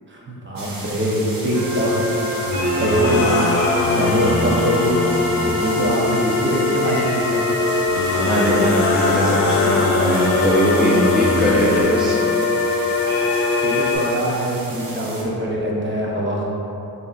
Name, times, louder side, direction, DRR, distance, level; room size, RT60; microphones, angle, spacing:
voice 1, 0.1-2.0 2.8-4.9 5.3-7.5 13.6-16.4, right 1 dB, 30° right, -3 dB, 0.8 m, -23 dB
sound 1, 0.6-15.2, right 2 dB, 70° right, 0.9 m, -35 dB
sound 2, 1.5-13.9, left 3 dB, 50° right, 1.3 m, -22 dB
sound 3, 2.5-5.9 7.9-11.8, left 2 dB, 90° left, 0.6 m, -22 dB
voice 2, 8.2-9.9 10.4-12.2, equal, ahead, -6 dB, 0.6 m, -21 dB
6.9 x 2.9 x 2.4 m, 2.9 s
cardioid pair, 75°, 35 cm